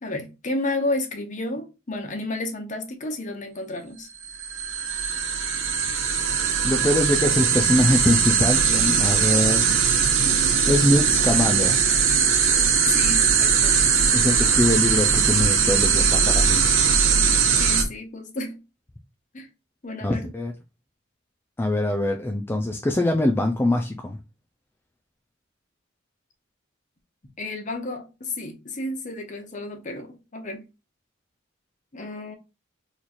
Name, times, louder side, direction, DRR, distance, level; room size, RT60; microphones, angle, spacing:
voice 1, 0.0-4.1 9.2-9.3 10.2-10.5 12.9-14.1 17.6-18.6 19.3-19.5 19.8-20.3 27.4-30.6 31.9-32.4, left 2 dB, 40° left, 0.7 m, -32 dB
sound 1, 4.2-17.8, right 6 dB, 75° right, 0.8 m, -20 dB
voice 2, 6.6-9.7 10.7-11.8 14.1-16.6 20.0-20.5 21.6-24.2, left 1 dB, 10° left, 0.3 m, -23 dB
3.0 x 2.4 x 4.1 m
head